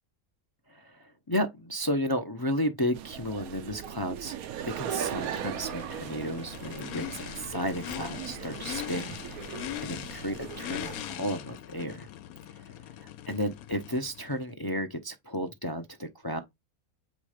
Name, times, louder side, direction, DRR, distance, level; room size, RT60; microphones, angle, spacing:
voice 1, 0.7-4.4 4.6-12.1 12.5-12.7 13.0-16.4, equal, 25° left, 0.5 m, -33 dB
sound 1, 2.9-11.0, right 9 dB, 80° right, 1.1 m, -39 dB
Race car auto racing / Idling / Accelerating revving vroom, 5.0-14.5, left 12 dB, 85° left, 1.1 m, -41 dB
8.1 x 3.2 x 5.0 m
omnidirectional pair, 1.5 m